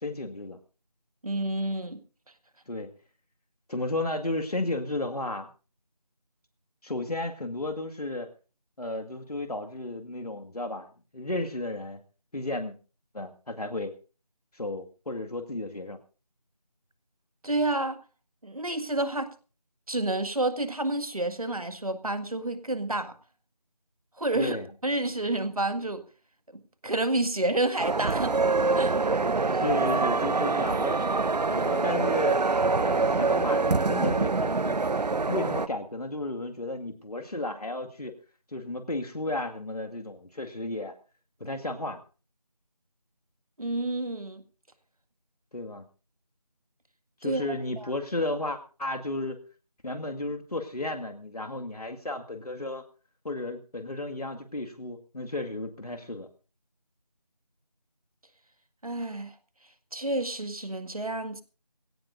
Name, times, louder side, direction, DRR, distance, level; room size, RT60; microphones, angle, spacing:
voice 1, 0.0-0.6 2.7-2.9 3.7-5.5 6.8-8.3 8.8-10.9 11.1-12.0 12.3-12.8 13.1-13.9 14.5-16.0 24.3-24.7 29.5-31.0 31.5-32.4 32.8-34.8 35.1-38.1 38.5-40.9 41.4-42.0 45.5-45.8 47.2-49.4 49.8-52.8 53.2-56.3, left 2 dB, 65° left, 5 dB, 2.0 m, -33 dB
voice 2, 1.2-2.0 17.4-18.0 18.4-19.3 19.9-23.1 24.2-24.6 24.8-26.0 26.8-28.4 28.7-28.9 43.6-44.4 47.2-47.4 47.8-47.9 58.8-59.3 59.9-61.4, right 2 dB, 60° right, 10 dB, 1.9 m, -29 dB
sound 1, 27.8-35.7, right 3 dB, 75° right, 0.7 m, -25 dB
21.5 x 17.0 x 2.6 m, 0.36 s
figure-of-eight pair, 175°, 21 cm